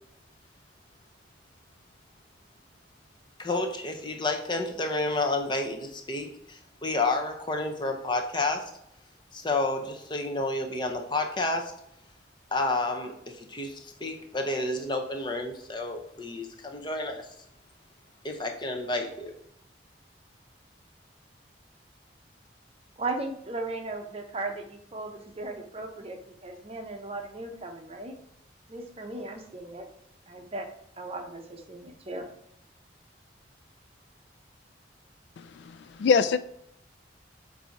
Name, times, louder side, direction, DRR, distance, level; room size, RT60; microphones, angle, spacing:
voice 1, 3.4-8.6 9.3-11.7 12.5-17.3 18.2-19.3, left 2 dB, 25° left, 4 dB, 0.8 m, -30 dB
voice 2, 23.0-28.1 28.7-29.9 30.3-30.7 31.0-32.3, right 2 dB, 30° right, 4 dB, 0.7 m, -37 dB
voice 3, 35.4-36.4, left 5 dB, 70° left, 13 dB, 0.3 m, -24 dB
7.5 x 2.7 x 4.5 m, 0.76 s
head